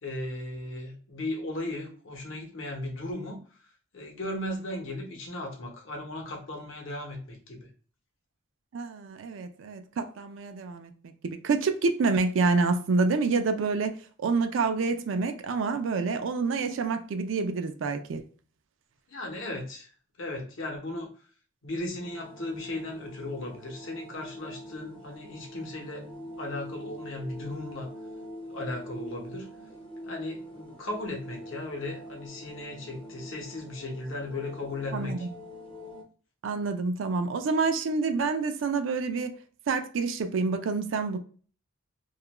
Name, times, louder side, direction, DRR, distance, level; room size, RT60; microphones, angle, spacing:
voice 1, 0.0-3.4 3.9-7.7 19.1-19.9 20.2-21.1 21.6-26.1 26.4-27.9 28.5-29.5 30.1-35.3, left 1 dB, 75° left, 0.8 m, -36 dB
voice 2, 8.7-10.9 11.2-14.0 14.2-18.2 34.9-35.3 36.4-39.4 39.7-41.2, right 4 dB, 70° right, 0.4 m, -27 dB
sound 1, 22.0-36.0, equal, 25° left, 0.5 m, -44 dB
2.3 x 2.2 x 2.9 m
head